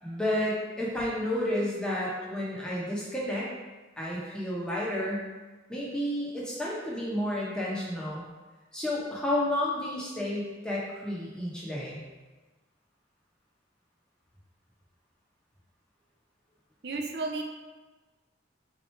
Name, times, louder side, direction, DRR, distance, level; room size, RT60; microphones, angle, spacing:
voice 1, 0.0-3.5 4.0-5.3 5.7-8.2 8.7-12.0, left 1 dB, 5° left, -6 dB, 0.9 m, -31 dB
voice 2, 16.8-17.4, right 3 dB, 60° right, 3 dB, 0.5 m, -33 dB
3.8 x 3.1 x 4.3 m, 1.2 s
head